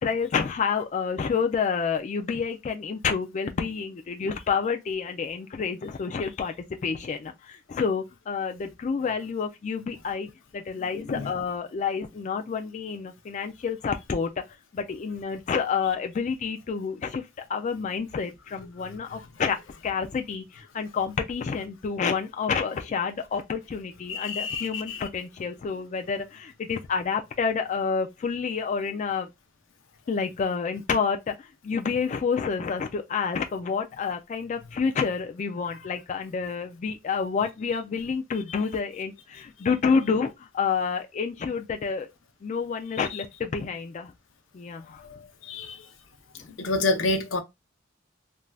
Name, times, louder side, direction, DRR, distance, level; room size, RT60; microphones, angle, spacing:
voice 1, 0.0-6.5 6.8-14.3 14.7-19.6 19.8-29.3 30.1-42.1 42.4-44.1 44.5-45.0, left 5 dB, 40° left, 0.3 m, -29 dB
voice 2, 24.1-25.0 45.5-45.7 46.6-47.4, left 3 dB, 90° left, 0.6 m, -27 dB
3.3 x 2.5 x 2.2 m
head